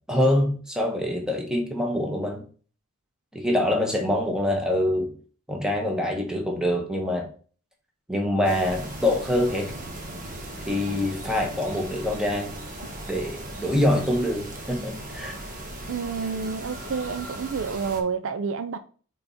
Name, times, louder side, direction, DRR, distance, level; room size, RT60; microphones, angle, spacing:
voice 1, 0.1-2.4 3.3-5.1 5.5-7.3 8.1-9.7 10.6-12.5 13.1-15.4, left 1 dB, 5° right, 1.2 m, -25 dB
sound 1, 8.4-18.0, right 1 dB, 40° right, 1.2 m, -38 dB
voice 2, 15.9-18.8, right 5 dB, 60° right, 0.4 m, -29 dB
5.6 x 4.1 x 4.2 m
head